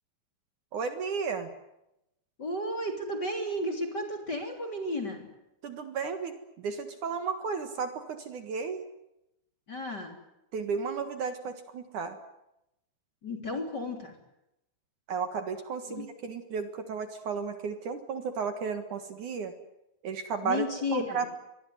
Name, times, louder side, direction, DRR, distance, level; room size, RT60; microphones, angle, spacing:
voice 1, 0.7-1.5 5.6-8.8 10.5-12.2 15.1-19.5 20.0-20.6 20.9-21.3, right 5 dB, 55° right, 8 dB, 2.3 m, -33 dB
voice 2, 2.4-5.3 9.7-10.2 13.2-14.2 15.9-16.0 20.4-21.3, left 1 dB, 25° left, 4 dB, 3.1 m, -33 dB
25.0 x 21.5 x 9.5 m, 0.87 s
omnidirectional pair, 5.5 m